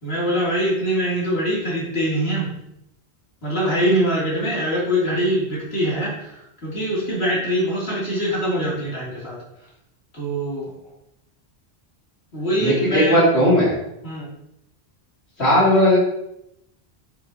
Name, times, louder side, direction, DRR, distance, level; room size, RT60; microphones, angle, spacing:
voice 1, 0.0-2.5 3.4-6.3 6.6-9.4 10.1-10.7 12.3-13.2 14.0-14.3, equal, 70° left, -7 dB, 3.3 m, -23 dB
voice 2, 12.6-13.7 15.4-16.0, equal, 85° left, -8 dB, 3.0 m, -16 dB
8.0 x 7.5 x 2.9 m, 0.80 s
omnidirectional pair, 1.1 m